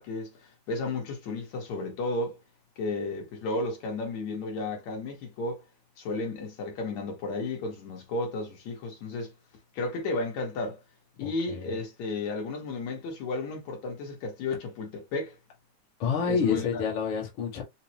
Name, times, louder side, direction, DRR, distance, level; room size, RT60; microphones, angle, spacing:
voice 1, 0.0-2.4 2.8-5.6 6.0-9.3 9.7-10.8 11.2-15.4 16.2-16.8, left 2 dB, 70° left, 2.6 m, -33 dB
voice 2, 11.2-11.8 16.0-17.6, left 6 dB, 50° left, 1.9 m, -29 dB
5.7 x 2.3 x 2.9 m
omnidirectional pair, 3.4 m